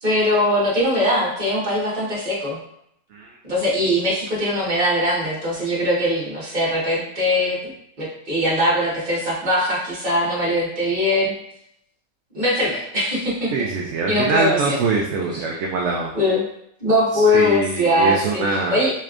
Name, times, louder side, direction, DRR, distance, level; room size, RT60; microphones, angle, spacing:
voice 1, 0.0-2.6 3.4-7.6 8.0-11.3 12.3-13.5 14.1-14.8 15.3-15.4 16.1-16.4 16.8-18.9, left 1 dB, 35° right, -7 dB, 1.5 m, -21 dB
voice 2, 13.5-16.1 17.1-18.8, right 4 dB, 65° right, -1 dB, 0.8 m, -23 dB
4.2 x 3.3 x 2.5 m, 0.74 s
omnidirectional pair, 1.5 m